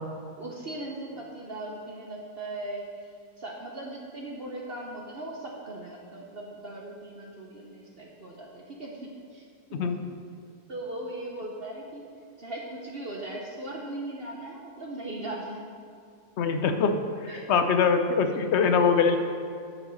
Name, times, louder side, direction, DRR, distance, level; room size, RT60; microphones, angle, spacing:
voice 1, 0.4-9.8 10.7-12.0 12.4-15.7 17.3-17.4 18.6-18.8, right 1 dB, 45° right, -1 dB, 0.9 m, -39 dB
voice 2, 16.4-17.0 17.5-19.2, left 5 dB, 55° left, 7 dB, 0.8 m, -22 dB
9.7 x 5.3 x 6.3 m, 2.4 s
omnidirectional pair, 1.7 m